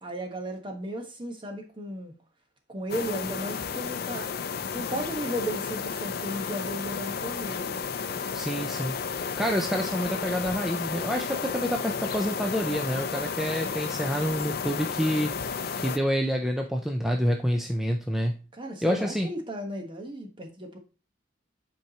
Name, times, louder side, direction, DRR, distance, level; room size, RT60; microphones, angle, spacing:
voice 1, 0.0-2.1 2.7-4.3 4.7-7.8 18.5-20.8, equal, 25° right, 1.2 m, -35 dB
sound 1, 2.9-16.0, left 6 dB, 55° left, 0.5 m, -32 dB
voice 2, 8.3-8.9 9.4-15.4 15.7-18.4 18.8-19.3, equal, ahead, 0.5 m, -28 dB
8.3 x 4.6 x 2.9 m
head